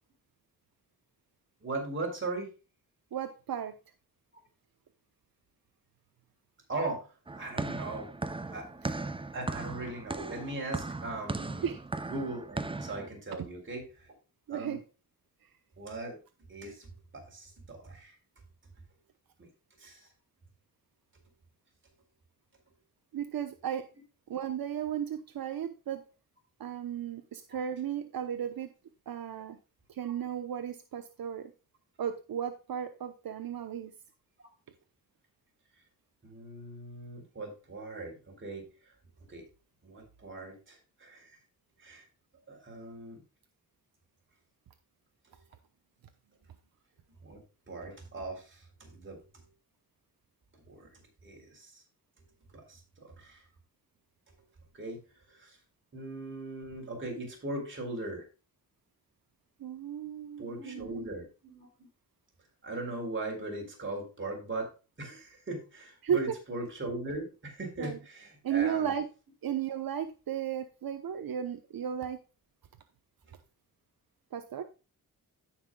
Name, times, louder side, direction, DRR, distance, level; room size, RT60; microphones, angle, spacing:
voice 1, 1.6-2.5 6.7-7.1 7.4-8.1 8.5-8.7 9.3-11.7 12.1-14.1 14.5-14.8 15.8-16.2 16.5-18.2 19.4-19.5 19.8-20.1 27.5-27.6 30.0-30.2 36.2-38.9 39.3-39.5 39.8-41.3 41.8-42.0 42.5-43.2 47.2-49.4 50.7-50.9 51.2-51.8 52.5-53.4 54.7-55.0 55.3-55.6 55.9-58.3 60.4-61.9 62.6-64.7 65.0-69.0, right 2 dB, 35° right, 0 dB, 4.1 m, -39 dB
voice 2, 3.1-3.7 8.8-8.9 11.6-11.8 14.5-14.8 23.1-23.9 24.3-26.0 26.6-28.7 29.1-29.6 29.9-31.5 32.0-33.9 59.6-61.1 66.0-66.3 67.8-68.0 68.4-69.1 69.4-72.2 74.3-74.6, right 9 dB, 75° right, 7 dB, 1.0 m, -34 dB
sound 1, 7.3-13.1, right 3 dB, 15° right, 0.6 m, -37 dB
16.5 x 5.9 x 2.3 m, 0.32 s
wide cardioid pair, 165°, 35 cm